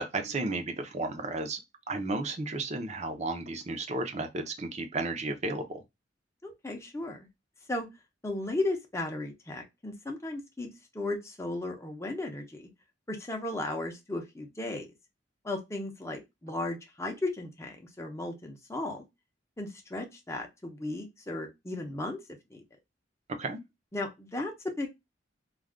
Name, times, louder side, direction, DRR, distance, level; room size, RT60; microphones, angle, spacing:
voice 1, 0.0-1.6 1.9-5.8 23.4-23.6, right 2 dB, 40° right, 0.6 m, -33 dB
voice 2, 6.4-7.2 7.7-7.9 8.2-10.7 10.9-12.7 13.1-14.9 15.4-19.0 19.6-22.2 22.5-22.6 23.9-24.9, left 2 dB, 15° left, 0.7 m, -35 dB
2.4 x 2.3 x 3.4 m
head